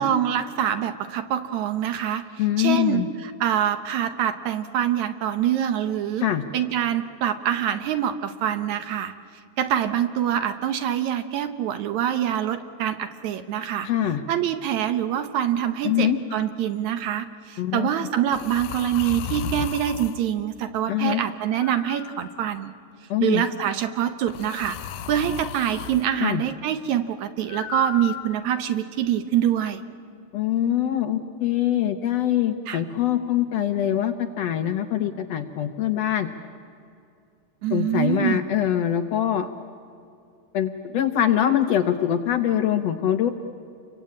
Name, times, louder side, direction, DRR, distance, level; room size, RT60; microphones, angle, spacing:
voice 1, 0.0-6.3 6.5-9.1 9.6-13.9 14.3-22.7 23.2-24.8 25.1-29.8 32.7-32.8 37.6-38.4, right 10 dB, 70° right, 10 dB, 2.1 m, -25 dB
voice 2, 2.4-3.1 6.2-6.4 13.8-14.2 15.8-16.2 17.6-17.9 20.9-21.2 23.1-23.4 26.2-26.4 30.3-36.3 37.7-39.5 40.5-43.3, left 11 dB, 70° left, 8 dB, 1.7 m, -23 dB
sound 1, 16.3-16.6 18.3-20.2 21.6-22.7 24.3-26.1 27.5-28.7, left 8 dB, 85° left, 2.4 m, -35 dB
29.0 x 23.5 x 8.6 m, 2.4 s
omnidirectional pair, 3.7 m